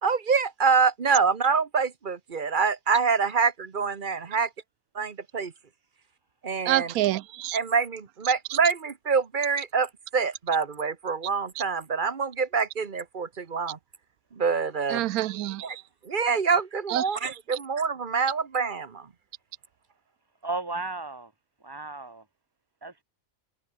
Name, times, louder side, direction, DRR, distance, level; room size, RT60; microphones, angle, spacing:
voice 1, 0.0-4.5 4.9-5.5 6.4-6.9 7.5-13.8 14.3-15.1 15.6-15.8 16.0-19.1, right 5 dB, 40° right, 1.2 m, -26 dB
voice 2, 6.7-7.6 14.9-15.8 16.9-17.0 17.5-17.6, right 15 dB, 85° right, 1.1 m, -27 dB
voice 3, 20.4-21.3 21.6-22.2 22.8-23.0, right 3 dB, 15° right, 1.8 m, -34 dB
omnidirectional pair, 1.5 m